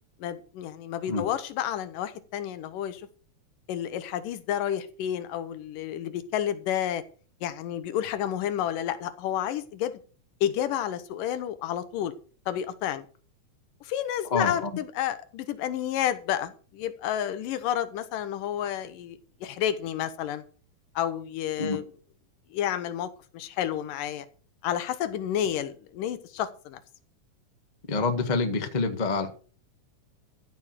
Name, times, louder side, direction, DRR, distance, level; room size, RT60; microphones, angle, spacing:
voice 1, 0.2-3.0 3.7-7.0 7.4-9.9 10.4-12.1 12.5-13.1 13.8-20.4 21.0-21.8 22.5-24.3 24.6-26.8, left 10 dB, 85° left, 12 dB, 2.6 m, -30 dB
voice 2, 14.3-14.7 21.6-21.8 27.9-29.3, left 3 dB, 30° left, 6 dB, 0.7 m, -27 dB
14.0 x 6.2 x 6.5 m, 0.40 s
omnidirectional pair, 3.7 m